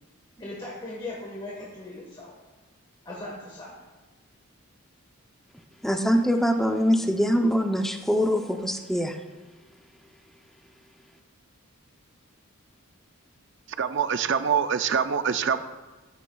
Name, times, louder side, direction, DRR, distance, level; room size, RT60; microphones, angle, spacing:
voice 1, 0.4-2.3 3.0-3.7, left 2 dB, 20° left, -5 dB, 1.4 m, -38 dB
voice 2, 5.8-9.2, equal, ahead, 4 dB, 0.6 m, -23 dB
voice 3, 13.8-15.6, right 7 dB, 55° right, 11 dB, 0.5 m, -24 dB
14.0 x 9.8 x 2.3 m, 1.2 s
head